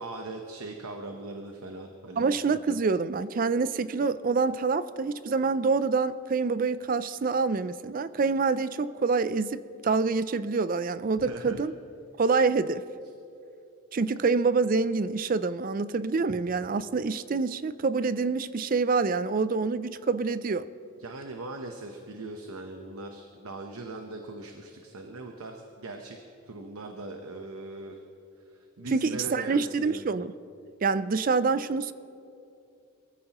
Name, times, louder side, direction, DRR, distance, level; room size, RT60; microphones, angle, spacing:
voice 1, 0.0-2.3 11.3-11.6 16.3-16.4 21.0-26.2 26.5-28.0 28.5-30.0, right 2 dB, 90° right, 4 dB, 0.9 m, -40 dB
voice 2, 2.2-11.7 12.2-12.8 13.9-20.7 28.9-30.3 30.8-31.9, right 4 dB, 40° right, 14 dB, 0.4 m, -26 dB
22.5 x 15.0 x 3.0 m, 2.6 s
head